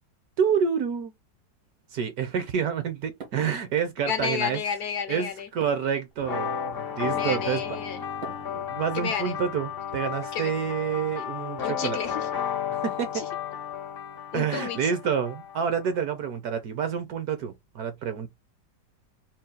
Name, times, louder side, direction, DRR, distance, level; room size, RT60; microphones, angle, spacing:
voice 1, 0.4-1.1 1.9-4.6 5.1-7.6 8.3-12.0 12.8-13.2 14.3-18.3, right 7 dB, 65° right, 1.0 m, -28 dB
sound 1, 1.6-9.0, right 4 dB, 80° right, 2.1 m, -51 dB
voice 2, 4.1-5.5 7.1-8.0 8.9-9.4 10.3-10.5 11.2-11.3 11.6-12.3 13.1-13.3 14.3-14.9, left 7 dB, 70° left, 1.0 m, -31 dB
sound 2, 6.2-15.8, left 8 dB, 55° left, 0.7 m, -33 dB
4.0 x 2.3 x 3.7 m
omnidirectional pair, 2.0 m